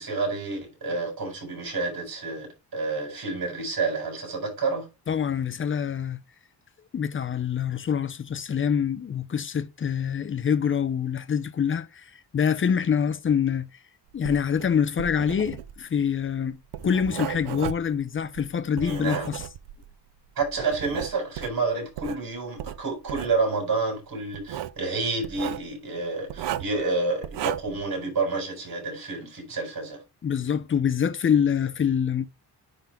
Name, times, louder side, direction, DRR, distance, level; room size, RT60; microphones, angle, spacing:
voice 1, 0.0-4.9 18.8-19.3 20.4-30.0, right 3 dB, 55° right, 4.5 m, -29 dB
voice 2, 5.1-6.2 6.9-13.7 14.1-16.6 16.8-19.4 30.2-32.2, left 7 dB, 30° left, 0.6 m, -25 dB
Writing, 14.1-19.9 20.4-22.2 22.6-23.4 24.3-24.8 25.2-25.7 26.3-26.8 27.2-27.8, right 12 dB, 85° right, 0.6 m, -35 dB
10.0 x 3.9 x 3.4 m
wide cardioid pair, 160°, 41 cm